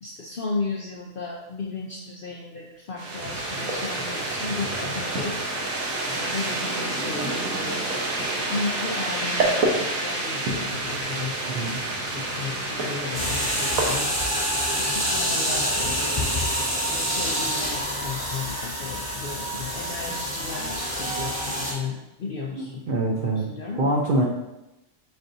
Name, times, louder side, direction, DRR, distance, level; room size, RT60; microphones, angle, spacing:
voice 1, 0.0-5.6 6.1-7.8 8.4-16.5 16.9-22.8 23.1-24.0, left 4 dB, 65° left, -1 dB, 0.5 m, -35 dB
sound 1, 3.0-13.9, right 2 dB, 90° right, 1.3 m, -28 dB
voice 2, 11.5-11.8 22.9-23.5 23.7-24.3, right 2 dB, 60° right, -2 dB, 0.5 m, -24 dB
sound 2, 13.1-21.7, equal, 10° right, 1.6 m, -27 dB
4.7 x 4.3 x 2.6 m, 0.94 s
omnidirectional pair, 1.4 m